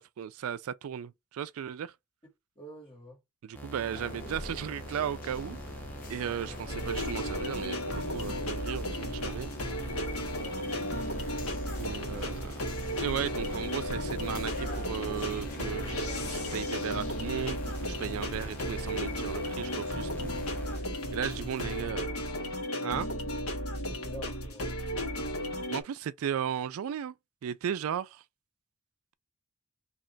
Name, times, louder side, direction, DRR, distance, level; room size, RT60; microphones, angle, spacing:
voice 1, 0.0-1.9 3.4-5.6 6.1-9.5 11.3-11.4 11.8-12.5 13.0-20.7 21.1-22.1 22.8-23.1 25.7-27.1 27.4-28.2, right 8 dB, 75° right, 0.3 m, -36 dB
voice 2, 2.6-3.2 6.4-6.6 10.3-10.7 12.1-12.3 21.1-21.9 23.7-24.8, equal, 25° left, 2.2 m, -48 dB
sound 1, 3.5-20.8, equal, 10° left, 0.7 m, -44 dB
sound 2, 3.9-21.9, left 1 dB, 40° left, 0.9 m, -45 dB
sound 3, 6.7-25.8, equal, 80° left, 1.2 m, -34 dB
3.2 x 2.8 x 3.9 m
head